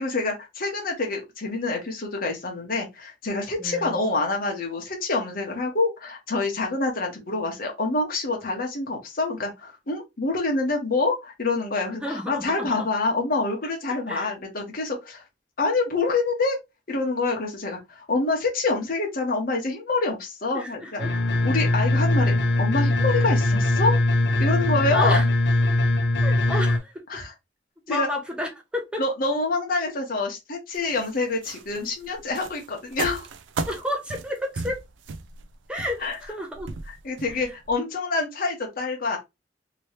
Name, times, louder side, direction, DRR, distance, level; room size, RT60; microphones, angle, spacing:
voice 1, 0.0-15.2 15.6-16.6 16.9-21.0 21.4-24.0 24.4-25.2 26.5-26.6 27.1-27.3 27.9-28.1 29.0-33.3 36.0-36.2 37.0-39.2, left 3 dB, 50° left, 1.1 m, -26 dB
voice 2, 3.6-4.0 12.0-12.9 14.1-14.3 20.5-21.2 24.9-25.3 26.2-27.0 27.9-29.0 33.7-34.8 35.7-36.7 37.3-37.5, left 1 dB, 5° right, 0.9 m, -31 dB
sound 1, 21.0-26.8, left 1 dB, 70° left, 0.6 m, -21 dB
sound 2, 30.7-37.7, right 4 dB, 80° right, 0.4 m, -36 dB
3.0 x 3.0 x 2.9 m
head